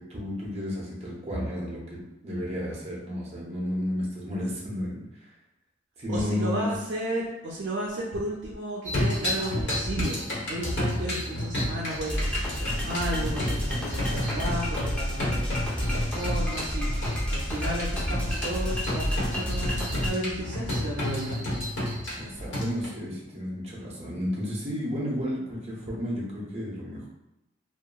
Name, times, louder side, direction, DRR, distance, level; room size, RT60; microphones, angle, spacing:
voice 1, 0.0-5.3 6.0-6.7 22.2-27.1, left 1 dB, 35° right, -4 dB, 0.7 m, -32 dB
voice 2, 6.1-17.0 17.3-21.5, right 1 dB, 80° right, -4 dB, 0.5 m, -33 dB
sound 1, 8.8-22.9, left 1 dB, 80° left, 1.1 m, -31 dB
sound 2, 12.1-20.1, equal, 5° left, 0.6 m, -30 dB
2.7 x 2.4 x 2.2 m, 0.89 s
head